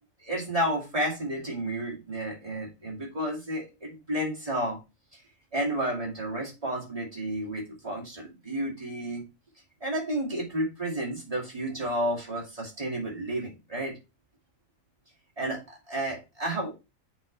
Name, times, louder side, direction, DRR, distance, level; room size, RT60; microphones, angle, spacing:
voice 1, 0.2-4.8 5.5-9.2 9.8-14.0 15.4-16.7, right 1 dB, 25° right, -3 dB, 2.6 m, -31 dB
8.5 x 4.5 x 3.4 m, 0.26 s
omnidirectional pair, 1.4 m